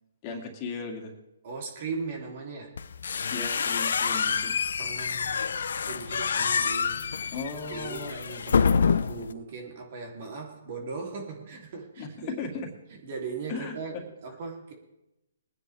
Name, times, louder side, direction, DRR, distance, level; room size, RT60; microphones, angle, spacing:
voice 1, 0.2-1.1 3.3-4.5 7.3-8.1 12.0-12.7 13.5-13.8, left 4 dB, 30° left, 1 dB, 2.3 m, -36 dB
voice 2, 1.4-2.8 4.1-4.3 4.8-5.6 5.9-7.1 7.7-12.3 12.9-14.7, right 4 dB, 50° right, 1 dB, 3.1 m, -38 dB
sound 1, 2.8-9.3, left 6 dB, 70° left, 0.6 m, -27 dB
22.5 x 9.9 x 3.4 m, 0.92 s
hypercardioid pair, 145°, 0 cm